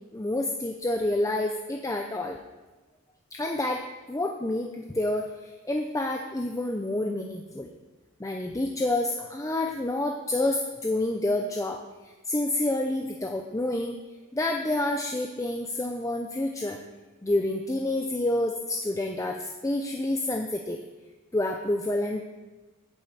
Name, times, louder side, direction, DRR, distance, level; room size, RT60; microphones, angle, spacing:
voice 1, 0.1-2.4 3.3-7.7 8.2-11.8 12.3-14.0 14.3-16.8 17.2-20.8 21.3-22.2, left 1 dB, 15° left, 3 dB, 0.6 m, -28 dB
9.2 x 7.5 x 8.2 m, 1.2 s
head